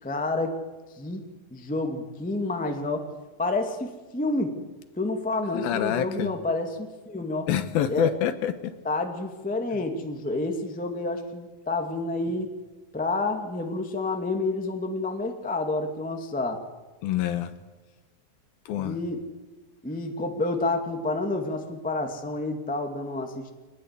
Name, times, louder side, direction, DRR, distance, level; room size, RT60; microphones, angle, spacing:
voice 1, 0.0-0.5 0.9-1.2 1.5-3.1 3.4-4.5 5.0-7.5 7.9-8.1 8.8-12.5 12.9-16.6 18.8-19.2 19.8-23.5, left 2 dB, 5° left, 4 dB, 0.8 m, -29 dB
voice 2, 5.5-6.3 7.5-8.7 17.0-17.5 18.7-19.0, left 10 dB, 70° left, 11 dB, 2.7 m, -26 dB
24.5 x 20.0 x 8.3 m, 1.2 s
omnidirectional pair, 4.8 m